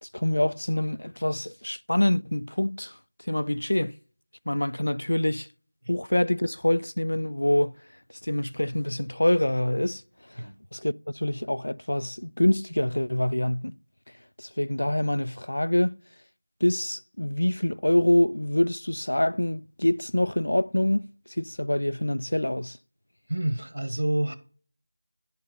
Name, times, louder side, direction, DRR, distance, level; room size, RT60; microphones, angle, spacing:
voice 1, 0.0-3.0 3.3-3.9 4.5-5.5 5.9-7.7 8.2-10.0 10.3-10.4 10.7-13.8 14.4-16.0 16.6-21.1 21.4-22.8, left 1 dB, 80° left, 0.3 m, -25 dB
voice 2, 23.3-24.3, right 1 dB, 85° right, 1.2 m, -27 dB
11.0 x 4.5 x 3.8 m
figure-of-eight pair, 180°, 0 cm